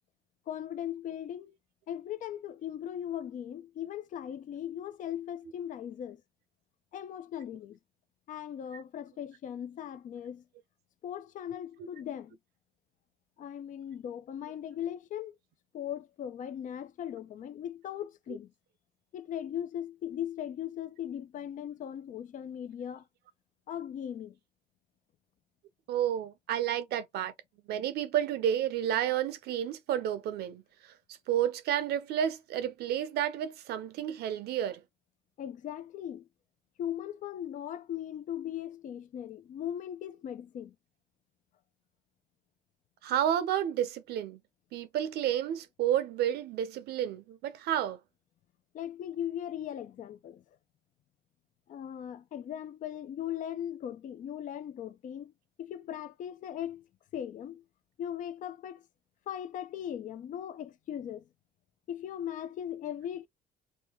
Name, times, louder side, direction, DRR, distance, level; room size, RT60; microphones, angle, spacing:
voice 1, 0.5-1.6 1.9-6.2 6.9-7.8 8.3-10.4 11.0-12.4 13.4-15.3 15.7-18.5 19.1-23.0 23.7-24.4 35.4-36.3 36.8-40.7 48.7-50.4 51.7-55.3 55.6-56.9 57.1-57.6 58.0-58.8 59.3-61.2 61.9-63.3, left 10 dB, 50° left, 0.5 m, -38 dB
voice 2, 25.9-27.3 27.7-30.9 31.3-34.8 43.0-44.4 44.7-48.0, right 10 dB, 75° right, 0.7 m, -31 dB
3.8 x 2.3 x 2.9 m
cardioid pair, 110°, 17 cm